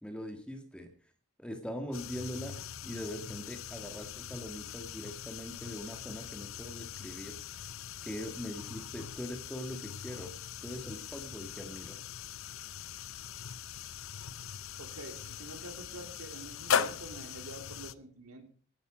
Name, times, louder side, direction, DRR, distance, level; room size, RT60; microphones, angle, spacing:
voice 1, 0.0-0.9 1.4-7.4 8.0-10.3 10.6-12.0, equal, 5° left, 5 dB, 1.8 m, -42 dB
sound 1, 1.9-17.9, left 7 dB, 70° left, 0.7 m, -40 dB
voice 2, 14.8-18.5, right 2 dB, 85° right, 5 dB, 3.2 m, -47 dB
16.5 x 11.5 x 5.0 m, 0.42 s
head